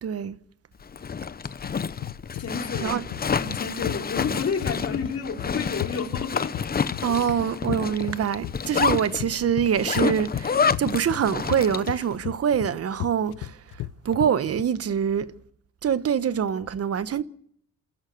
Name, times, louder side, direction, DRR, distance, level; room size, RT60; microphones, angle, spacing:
voice 1, 0.0-0.4 2.8-3.0 7.0-13.6 14.0-15.3 15.8-17.2, right 8 dB, 50° right, 1.2 m, -25 dB
Zipper (clothing), 0.8-12.0, left 6 dB, 30° left, 0.9 m, -29 dB
sound 1, 1.6-14.6, left 15 dB, 90° left, 0.8 m, -35 dB
voice 2, 2.4-3.0 3.3-6.7 7.1-7.5, left 5 dB, 55° left, 4.3 m, -31 dB
28.0 x 14.0 x 7.9 m
cardioid pair, 90°, 30 cm